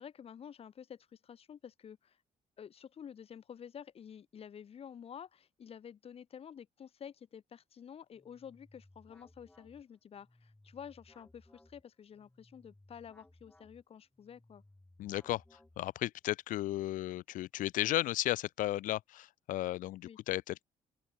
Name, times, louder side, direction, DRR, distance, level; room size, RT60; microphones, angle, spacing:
voice 1, 0.0-2.2 2.6-14.6 20.0-20.2, left 8 dB, 50° left, 3.7 m, -50 dB
sound 1, 8.1-16.2, left 1 dB, 10° left, 3.8 m, -63 dB
voice 2, 15.0-15.4 15.8-20.6, left 15 dB, 90° left, 0.9 m, -34 dB
open air
cardioid pair, 130°, 13 cm